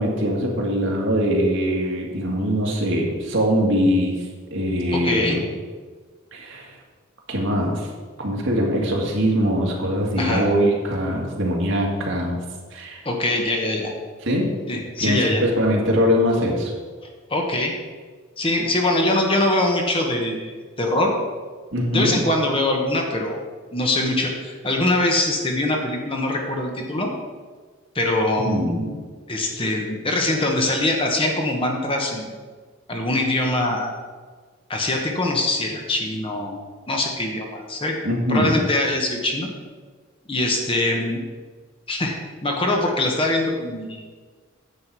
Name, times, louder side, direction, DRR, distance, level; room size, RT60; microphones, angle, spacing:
voice 1, 0.0-4.2 4.5-5.4 6.3-6.7 7.3-7.9 8.2-12.4 12.7-13.0 14.2-14.6 15.0-16.7 21.7-22.2 28.4-29.0 38.0-38.6, equal, 65° right, -1 dB, 2.0 m, -22 dB
voice 2, 4.9-5.4 10.2-10.4 13.0-13.9 14.7-15.4 17.3-17.7 18.4-21.1 21.9-23.4 23.7-27.1 27.9-28.7 29.3-32.3 32.9-33.9 34.7-36.6 36.9-38.0 38.3-39.5 40.3-41.2 41.9-42.1 42.4-44.2, left 1 dB, 25° left, 1 dB, 1.2 m, -23 dB
9.9 x 7.5 x 4.7 m, 1.5 s
head